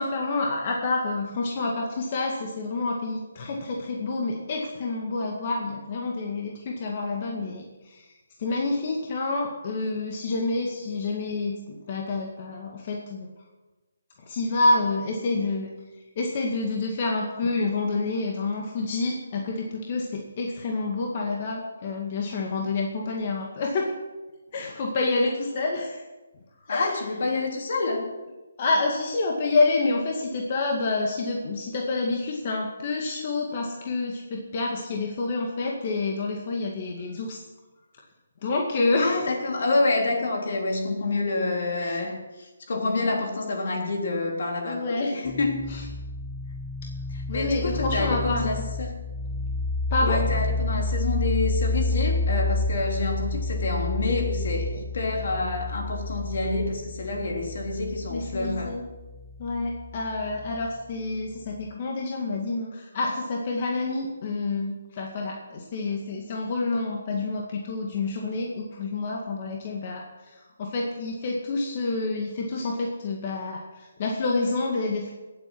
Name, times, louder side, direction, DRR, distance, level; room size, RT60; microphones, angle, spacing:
voice 1, 0.0-8.1 8.4-13.3 14.3-15.7 16.2-23.9 24.5-26.0 26.7-26.9 28.6-37.4 38.4-39.3 41.8-42.0 44.6-45.1 45.7-45.8 47.3-48.4 49.9-50.2 58.1-58.8 59.4-75.1, left 3 dB, 40° left, 0 dB, 2.0 m, -28 dB
voice 2, 26.7-28.1 39.0-45.8 47.1-48.9 50.0-58.8, left 3 dB, 65° left, 2 dB, 3.3 m, -28 dB
sound 1, 45.3-60.7, left 2 dB, 15° left, 1.5 m, -30 dB
18.0 x 8.2 x 6.2 m, 1.2 s
hypercardioid pair, 155°, 0 cm